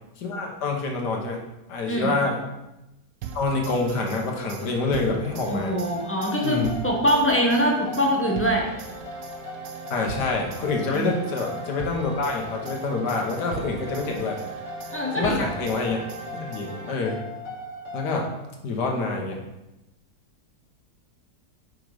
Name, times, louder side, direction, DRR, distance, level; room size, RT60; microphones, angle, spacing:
voice 1, 0.2-1.4 1.7-2.4 3.3-5.7 6.4-6.7 9.9-14.4 15.2-16.0 16.3-17.2 17.9-18.3 18.6-19.4, left 3 dB, 75° left, 1 dB, 1.7 m, -26 dB
sound 1, 3.2-17.3, right 5 dB, 90° right, 1.3 m, -40 dB
sound 2, 5.5-18.3, left 2 dB, 60° left, 1.3 m, -39 dB
voice 2, 5.5-8.7 10.9-11.2 14.9-15.5, equal, 10° left, -2 dB, 0.6 m, -23 dB
5.3 x 5.0 x 4.7 m, 0.94 s
omnidirectional pair, 1.8 m